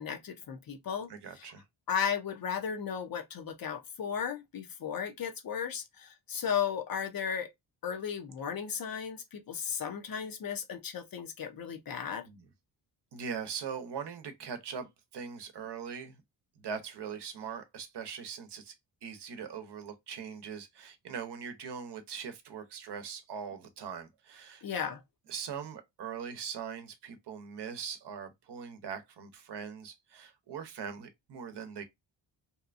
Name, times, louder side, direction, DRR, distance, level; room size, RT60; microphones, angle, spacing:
voice 1, 0.0-1.1 1.9-7.5 7.8-12.2 24.6-25.0, left 7 dB, 50° left, 0.7 m, -35 dB
voice 2, 1.1-1.6 12.2-12.5 13.1-16.2 16.6-18.7 19.0-24.6 25.3-31.8, right 7 dB, 60° right, 0.8 m, -41 dB
2.8 x 2.2 x 2.4 m
cardioid pair, 85°, 46 cm